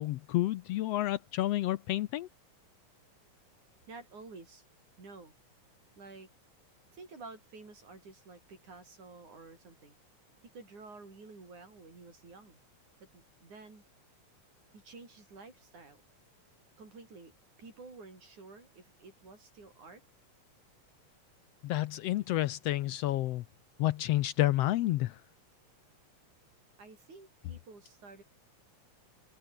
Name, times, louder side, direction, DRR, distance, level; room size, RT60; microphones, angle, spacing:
voice 1, 0.0-2.3 21.6-23.4 23.8-25.2, left 15 dB, 75° left, 1.5 m, -30 dB
voice 2, 3.9-4.6 5.0-5.3 6.0-6.3 6.9-10.0 10.5-12.6 13.0-13.8 14.7-16.0 16.8-17.3 17.6-20.0 26.8-28.2, right 3 dB, 90° right, 8.7 m, -51 dB
omnidirectional pair, 3.3 m